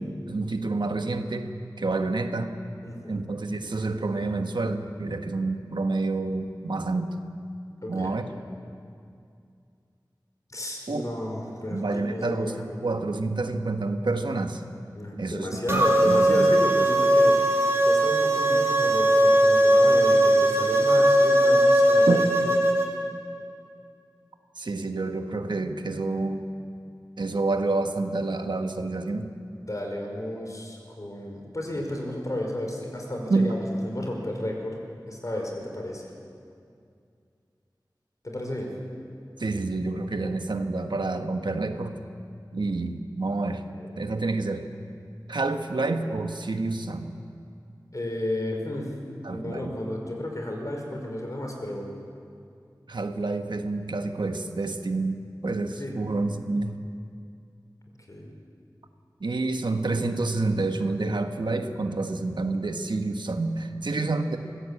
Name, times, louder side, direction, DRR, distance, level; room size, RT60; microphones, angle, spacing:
voice 1, 0.0-1.5 1.8-2.5 3.1-7.1 7.9-8.3 10.9-11.1 11.7-14.6 15.1-16.5 22.1-22.4 24.6-26.4 27.2-29.3 33.3-33.5 39.4-41.9 42.5-43.6 44.0-44.7 45.3-47.1 49.2-49.7 52.9-56.8 59.2-64.4, right 3 dB, 90° right, 6 dB, 1.4 m, -28 dB
voice 2, 2.8-3.3 7.8-8.2 10.5-12.6 14.9-17.3 17.8-22.5 25.9-26.0 29.5-34.8 35.1-36.1 38.2-38.7 43.7-44.1 47.9-48.8 49.3-51.9 55.8-55.9 58.1-58.3 63.8-64.0, left 1 dB, 45° left, 1 dB, 5.0 m, -33 dB
sound 1, 15.7-22.9, right 1 dB, 35° right, 3.8 m, -19 dB
23.5 x 16.0 x 8.5 m, 2.4 s
wide cardioid pair, 55°, 8 cm